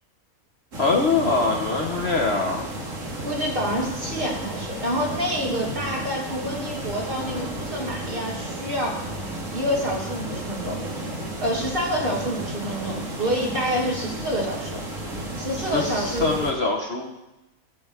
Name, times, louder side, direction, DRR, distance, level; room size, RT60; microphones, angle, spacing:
sound 1, 0.7-16.5, right 1 dB, 60° right, 2.2 m, -33 dB
voice 1, 0.8-2.6 15.6-17.1, left 3 dB, 50° left, 0 dB, 1.3 m, -23 dB
voice 2, 3.2-9.0 9.5-10.8 11.4-14.8 15.4-16.5, equal, 40° right, -4 dB, 2.7 m, -27 dB
16.5 x 7.1 x 3.6 m, 0.95 s
omnidirectional pair, 1.5 m